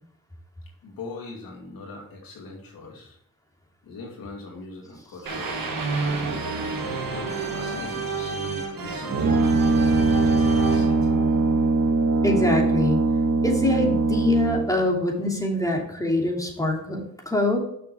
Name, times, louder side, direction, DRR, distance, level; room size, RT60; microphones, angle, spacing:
voice 1, 0.8-3.2 3.8-6.5 7.1-11.1, left 3 dB, 90° left, -1 dB, 2.6 m, -41 dB
sound 1, 5.3-12.2, right 4 dB, 75° right, 1.9 m, -30 dB
Brass instrument, 9.1-14.9, right 3 dB, 45° right, 0.9 m, -21 dB
voice 2, 12.2-13.0 13.4-17.6, left 2 dB, 10° left, 0 dB, 2.8 m, -24 dB
6.7 x 6.1 x 4.8 m, 0.70 s
cardioid pair, 55°, 34 cm